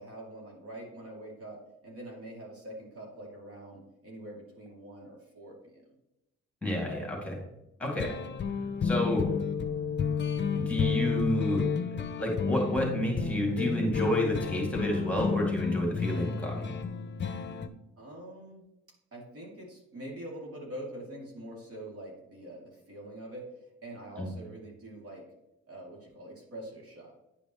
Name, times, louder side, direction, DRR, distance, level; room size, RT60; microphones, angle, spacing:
voice 1, 0.0-5.8 18.0-18.6 19.1-23.5 23.8-25.2 25.7-27.1, right 1 dB, 50° right, -2 dB, 2.8 m, -44 dB
voice 2, 6.6-7.4 7.8-8.1 8.8-9.2 10.5-11.6 12.2-16.7 24.2-24.3, equal, 5° left, -1 dB, 2.3 m, -30 dB
sound 1, 7.8-17.7, left 6 dB, 40° left, 0.6 m, -31 dB
10.0 x 5.4 x 3.1 m, 0.92 s
cardioid pair, 90°, 30 cm